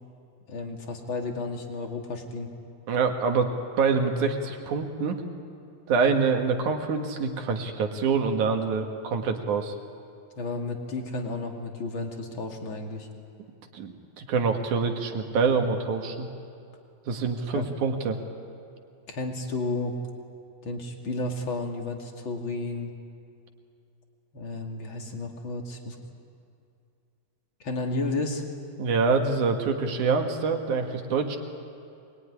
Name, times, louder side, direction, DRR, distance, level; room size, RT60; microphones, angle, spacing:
voice 1, 0.5-2.5 10.4-13.1 17.4-17.6 19.1-20.0 20.6-22.9 24.3-26.0 27.6-28.4, left 2 dB, 35° left, 2 dB, 2.6 m, -32 dB
voice 2, 2.9-5.2 5.9-9.7 13.7-13.9 14.2-16.3 17.1-18.2 28.8-31.4, right 5 dB, 60° right, 4 dB, 3.0 m, -25 dB
25.5 x 21.5 x 9.9 m, 2.5 s
omnidirectional pair, 4.3 m